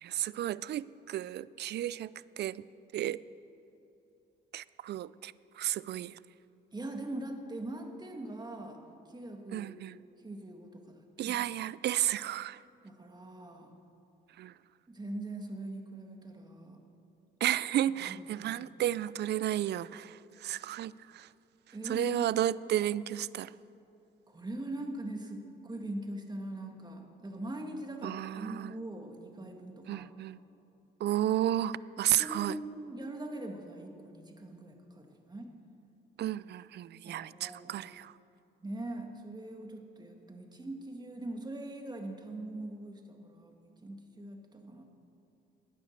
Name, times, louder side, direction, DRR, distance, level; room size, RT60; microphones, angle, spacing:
voice 1, 0.0-2.6 2.9-3.2 4.5-6.2 9.5-9.9 11.2-12.6 14.4-14.5 17.4-21.3 21.8-23.5 28.0-28.7 29.9-30.4 31.0-32.6 36.2-38.1, right 12 dB, 60° right, 19 dB, 0.4 m, -32 dB
voice 2, 6.7-8.8 9.1-9.7 10.2-11.4 12.8-13.7 14.9-16.8 18.0-18.5 21.7-22.2 24.3-30.1 32.1-35.5 37.1-37.7 38.6-44.8, right 1 dB, 20° right, 3 dB, 1.8 m, -42 dB
16.5 x 10.5 x 6.6 m, 2.7 s
cardioid pair, 90°, 20 cm